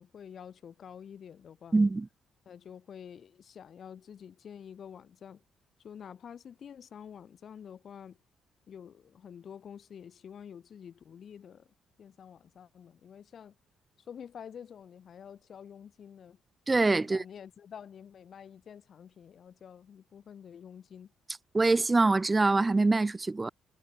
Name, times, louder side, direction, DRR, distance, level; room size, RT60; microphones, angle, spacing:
voice 1, 0.0-1.8 2.5-5.4 5.8-8.2 8.7-11.7 12.0-13.5 14.1-16.4 17.0-21.1, left 8 dB, 55° left, 0.9 m, -48 dB
voice 2, 1.7-2.1 16.7-17.2 21.5-23.5, right 3 dB, 20° right, 0.3 m, -24 dB
cardioid pair, 90°, 0 cm